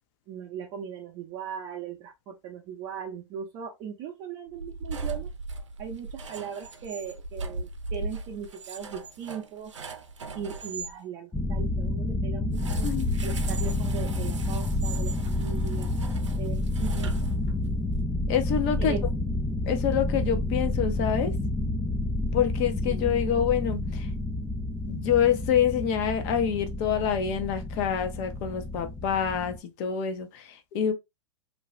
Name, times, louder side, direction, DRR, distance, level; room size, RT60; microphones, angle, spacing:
voice 1, 0.3-5.3 5.8-9.7 10.3-12.9 13.2-15.9 16.4-17.1 18.8-19.0 22.9-23.1, right 7 dB, 35° right, 0.6 m, -38 dB
sound 1, 4.5-10.9 12.5-17.8, right 3 dB, 85° right, 0.5 m, -37 dB
sound 2, 11.3-29.6, left 2 dB, 5° left, 0.3 m, -29 dB
voice 2, 12.8-13.1 18.3-19.0 19.7-21.4 22.3-24.1 24.9-30.9, left 8 dB, 45° left, 0.7 m, -26 dB
2.6 x 2.3 x 3.0 m
hypercardioid pair, 105°, 15 cm